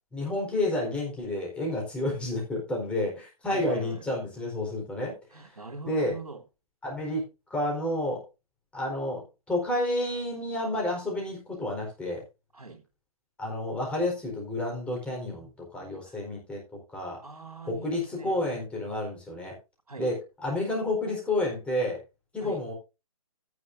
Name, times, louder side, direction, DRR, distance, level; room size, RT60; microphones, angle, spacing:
voice 1, 0.1-5.1 5.8-6.1 6.8-7.2 7.5-8.2 8.7-12.2 13.4-16.6 16.9-17.2 17.6-19.5 20.0-22.0 22.3-22.7, left 1 dB, 5° left, 4.4 m, -30 dB
voice 2, 3.5-4.0 5.3-6.4 12.5-12.8 16.1-16.2 17.2-18.4 19.9-20.1 22.4-22.6, right 3 dB, 85° right, 3.2 m, -42 dB
14.0 x 9.4 x 2.6 m
figure-of-eight pair, 135°, 19 cm